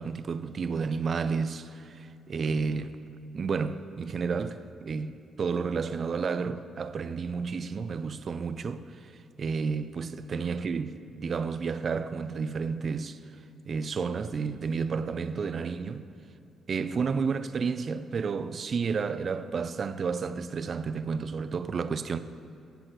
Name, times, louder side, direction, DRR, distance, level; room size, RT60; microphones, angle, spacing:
voice 1, 0.0-3.0 3.3-8.9 9.4-13.2 13.7-16.1 16.7-22.2, right 5 dB, 45° right, 0.4 m, -31 dB
13.5 x 7.7 x 3.1 m
cardioid pair, 90°, 0 cm